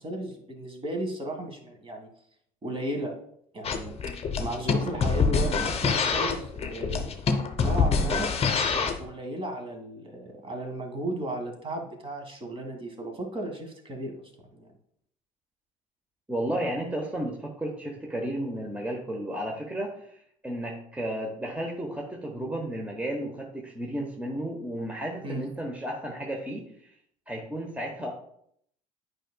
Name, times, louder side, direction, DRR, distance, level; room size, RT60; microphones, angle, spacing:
voice 1, 0.0-2.1 2.6-3.1 3.5-3.9 4.4-7.1 7.6-8.3 8.7-14.7 25.2-25.5, right 1 dB, 30° right, 2 dB, 1.7 m, -35 dB
sound 1, 3.6-9.0, left 5 dB, 35° left, 0.8 m, -25 dB
voice 2, 16.3-20.2 20.4-26.6 27.3-28.1, right 1 dB, 5° right, 0 dB, 1.0 m, -33 dB
9.0 x 5.0 x 2.3 m, 0.69 s
hypercardioid pair, 65°, 18 cm